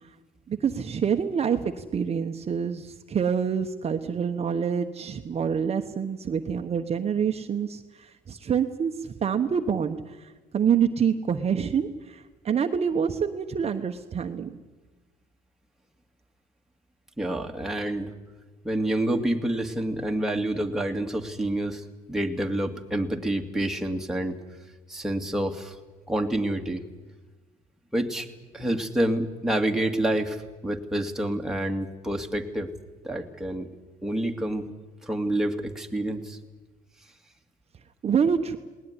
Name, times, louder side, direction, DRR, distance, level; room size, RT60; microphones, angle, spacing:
voice 1, 0.5-14.6 38.0-38.6, right 7 dB, 40° right, 6 dB, 1.2 m, -27 dB
voice 2, 17.2-18.1 18.6-24.4 24.9-25.8 26.1-26.8 27.9-28.3 28.5-32.7 33.0-33.7 34.0-34.7 35.0-36.4, right 1 dB, 5° right, 2 dB, 2.3 m, -28 dB
20.0 x 19.0 x 9.9 m, 1.2 s
cardioid pair, 110°, 17 cm